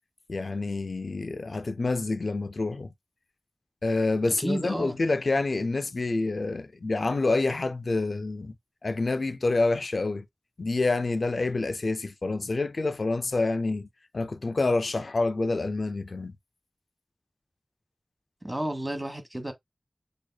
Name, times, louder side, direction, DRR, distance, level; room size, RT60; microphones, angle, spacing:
voice 1, 0.3-2.9 3.8-8.5 8.8-10.2 10.6-13.9 14.1-16.3, left 3 dB, 80° left, 0.3 m, -27 dB
voice 2, 4.3-5.0 18.4-19.5, right 1 dB, 20° right, 1.2 m, -31 dB
6.3 x 2.4 x 2.2 m
wide cardioid pair, 50°, 0 cm